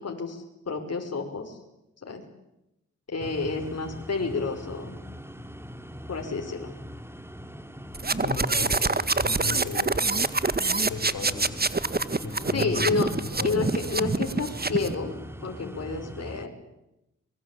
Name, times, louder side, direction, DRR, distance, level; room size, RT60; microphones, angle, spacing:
voice 1, 0.0-1.6 2.0-2.2 3.1-5.0 6.1-6.7 12.5-13.1 13.4-15.2 15.4-16.5, left 4 dB, 50° left, 2 dB, 5.2 m, -30 dB
sound 1, 3.2-16.5, equal, 10° right, 2.8 m, -42 dB
sound 2, 7.9-15.0, right 3 dB, 30° right, 1.9 m, -26 dB
voice 2, 8.2-9.9 10.8-11.7 12.2-13.6, left 4 dB, 75° left, 4 dB, 5.7 m, -36 dB
24.0 x 22.5 x 8.6 m, 0.88 s
supercardioid pair, 40°, 31 cm